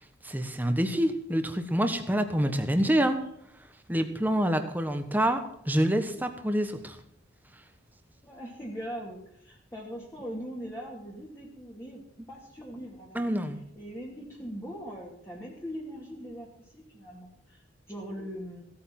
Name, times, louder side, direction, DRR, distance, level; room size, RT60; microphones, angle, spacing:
voice 1, 0.2-3.2 3.9-7.0 13.1-13.6, equal, 10° right, 7 dB, 1.3 m, -27 dB
voice 2, 8.2-12.0 12.3-13.2 13.8-18.6, equal, 15° left, -5 dB, 2.5 m, -41 dB
16.5 x 8.7 x 6.0 m, 0.76 s
head